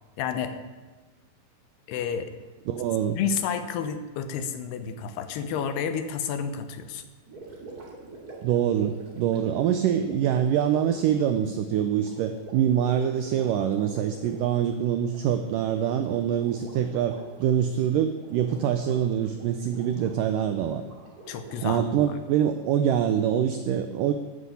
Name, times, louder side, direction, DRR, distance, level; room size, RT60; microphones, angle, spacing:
voice 1, 0.2-0.6 1.9-2.3 3.2-7.1 21.3-22.1, left 7 dB, 80° left, 9 dB, 3.0 m, -30 dB
voice 2, 2.7-3.2 8.4-20.8 21.6-24.1, right 9 dB, 90° right, 8 dB, 1.9 m, -25 dB
Gurgling, 7.2-22.5, right 3 dB, 30° right, 2.3 m, -46 dB
12.0 x 9.6 x 8.4 m, 1.3 s
omnidirectional pair, 4.7 m